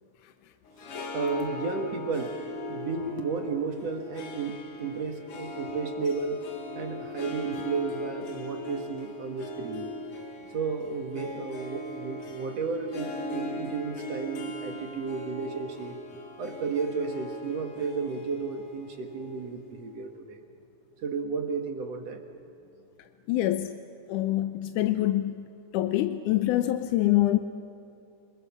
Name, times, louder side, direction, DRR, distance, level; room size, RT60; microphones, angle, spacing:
Harp, 0.6-20.0, left 2 dB, 55° left, 2.5 m, -40 dB
voice 1, 1.1-6.4 6.7-9.9 10.5-16.0 16.4-20.4 21.0-22.2, right 4 dB, 60° right, 4 dB, 2.5 m, -33 dB
voice 2, 23.3-23.8 24.1-25.4 25.7-27.4, left 14 dB, 85° left, 9 dB, 2.2 m, -25 dB
28.0 x 20.5 x 7.4 m, 2.9 s
omnidirectional pair, 3.5 m